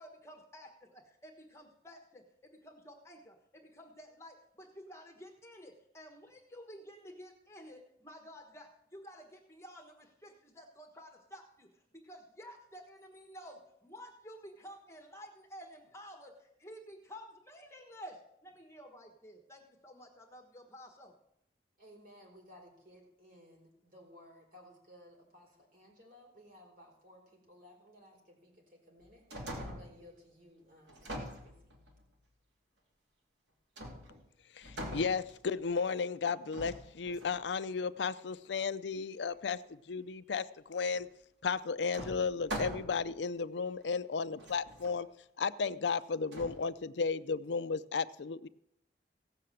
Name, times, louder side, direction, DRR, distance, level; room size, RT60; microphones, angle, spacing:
voice 1, 0.0-21.1, equal, 15° left, 3 dB, 1.4 m, -52 dB
voice 2, 21.8-31.8, equal, 50° right, 0 dB, 4.4 m, -58 dB
sound 1, 29.0-30.0 30.9-32.0 33.8-34.3 34.6-35.7 36.5-37.4 40.9-41.0 41.9-43.1 43.8-43.9 44.4-44.9 46.3-46.6, right 1 dB, 85° right, 2.7 m, -43 dB
voice 3, 34.6-39.6 39.9-41.1 41.4-45.1 45.4-48.5, left 5 dB, 85° left, 14 dB, 0.5 m, -34 dB
16.5 x 6.7 x 7.6 m, 0.77 s
head